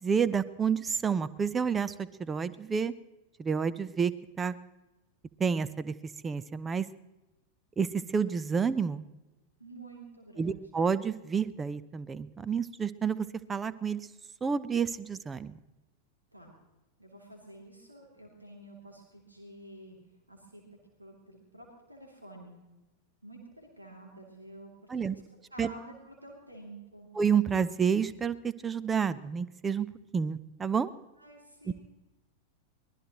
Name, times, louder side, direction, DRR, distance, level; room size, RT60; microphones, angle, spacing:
voice 1, 0.0-2.9 3.4-4.6 5.4-6.9 7.8-9.0 10.4-14.1 14.4-15.6 24.9-25.2 25.6-25.7 27.2-29.9 30.1-30.9 31.7-31.8, right 6 dB, 15° right, 17 dB, 0.7 m, -29 dB
voice 2, 9.6-10.6 16.3-16.5 17.0-20.0 20.3-20.6 21.0-22.6 23.2-25.2 25.5-27.1 31.2-31.7, right 1 dB, 85° right, -1 dB, 3.0 m, -50 dB
24.0 x 19.5 x 3.1 m, 1.1 s
figure-of-eight pair, 90°, 0 cm